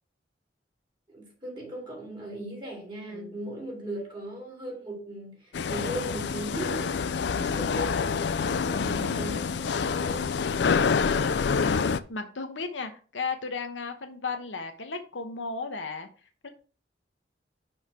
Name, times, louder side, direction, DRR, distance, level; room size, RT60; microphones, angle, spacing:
voice 1, 1.1-10.4, right 1 dB, 25° right, 2.5 m, -38 dB
sound 1, 5.5-12.0, left 5 dB, 65° left, 0.4 m, -27 dB
voice 2, 10.6-16.1 16.4-16.5, left 4 dB, 90° left, 1.0 m, -35 dB
6.3 x 3.3 x 5.6 m
head